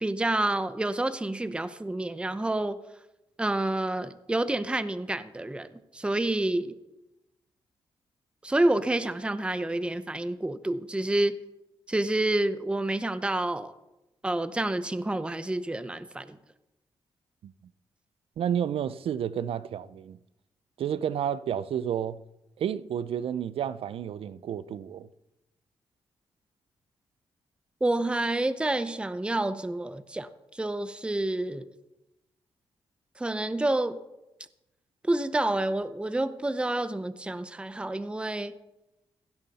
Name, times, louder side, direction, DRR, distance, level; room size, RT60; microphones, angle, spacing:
voice 1, 0.0-2.8 3.4-6.7 8.4-11.3 11.9-13.7 14.2-16.4 27.8-31.7 33.2-34.0 35.0-38.5, right 2 dB, 10° right, 0.7 m, -28 dB
voice 2, 18.4-20.2 20.8-22.2 22.6-25.1, right 9 dB, 75° right, 0.6 m, -31 dB
16.0 x 11.5 x 4.2 m
cardioid pair, 95°, 10 cm